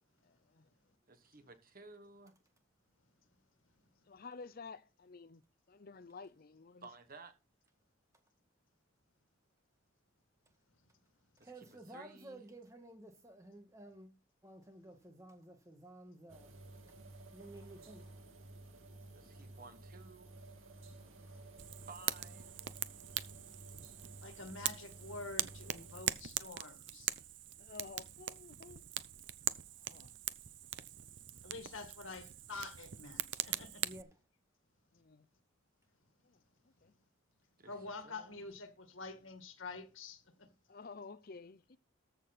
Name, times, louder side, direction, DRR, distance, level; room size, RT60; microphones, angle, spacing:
voice 1, 0.2-0.7 4.1-6.9 17.8-17.9 21.4-21.6 27.6-28.8 29.7-30.1 34.9-35.3 36.2-36.4 36.8-36.9 40.7-41.8, left 4 dB, 45° left, 0.6 m, -52 dB
voice 2, 1.1-2.3 6.8-7.3 11.4-12.4 19.1-20.3 21.9-22.5 37.6-37.7 38.0-38.4, right 3 dB, 45° right, 1.3 m, -55 dB
voice 3, 11.4-14.1 14.4-16.5 17.3-18.1 33.8-34.1, right 1 dB, 15° right, 1.8 m, -53 dB
sound 1, 16.3-26.1, right 2 dB, 85° right, 2.0 m, -54 dB
Fire, 21.6-34.0, right 12 dB, 60° right, 0.7 m, -42 dB
voice 4, 24.2-27.1 31.4-33.8 37.7-40.5, left 3 dB, 75° left, 1.9 m, -47 dB
14.0 x 6.6 x 4.2 m
head